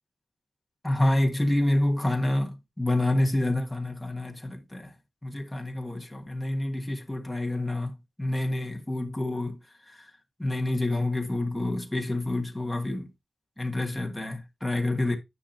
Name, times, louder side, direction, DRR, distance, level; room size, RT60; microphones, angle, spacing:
voice 1, 0.8-4.9 5.2-9.6 9.9-10.1 10.4-13.1 13.6-15.2, left 1 dB, 5° left, 1.5 m, -28 dB
9.8 x 5.7 x 2.7 m
wide cardioid pair, 175°, 0 cm